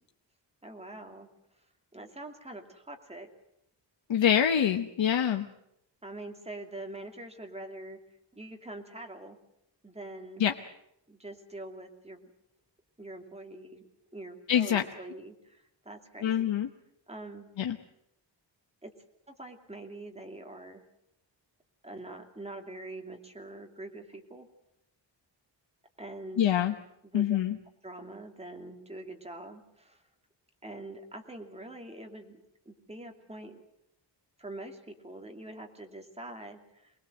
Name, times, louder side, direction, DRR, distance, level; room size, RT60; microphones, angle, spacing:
voice 1, 0.6-1.3 1.9-3.3 6.0-8.0 8.3-9.4 9.8-10.4 11.1-12.3 13.0-13.8 14.1-16.5 17.1-17.5 18.8-18.9 19.3-20.8 21.8-24.5 26.0-26.4 27.1-27.4 27.8-30.0 30.6-32.4 32.6-33.6 34.4-36.9, right 2 dB, 15° right, 3 dB, 2.6 m, -44 dB
voice 2, 4.1-5.5 10.4-10.5 14.5-14.8 16.2-16.7 17.6-17.8 26.4-26.7 27.1-27.6, left 9 dB, 75° left, 6 dB, 1.1 m, -25 dB
24.5 x 20.5 x 7.8 m, 0.79 s
wide cardioid pair, 140°, 46 cm